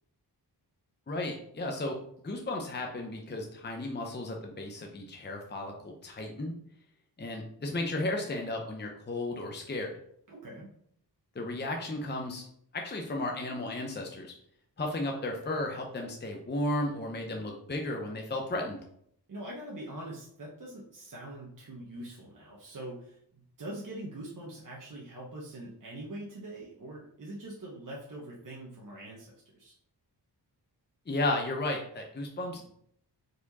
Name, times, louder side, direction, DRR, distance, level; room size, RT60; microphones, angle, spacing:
voice 1, 1.1-2.0 2.2-6.5 7.2-9.9 11.3-12.4 12.7-14.3 14.8-18.8 31.1-32.7, left 2 dB, 25° left, 1 dB, 0.7 m, -34 dB
voice 2, 10.3-10.7 19.3-23.2 23.6-29.7, right 1 dB, 50° right, -4 dB, 1.2 m, -43 dB
4.8 x 4.8 x 4.1 m, 0.68 s
wide cardioid pair, 145°, 42 cm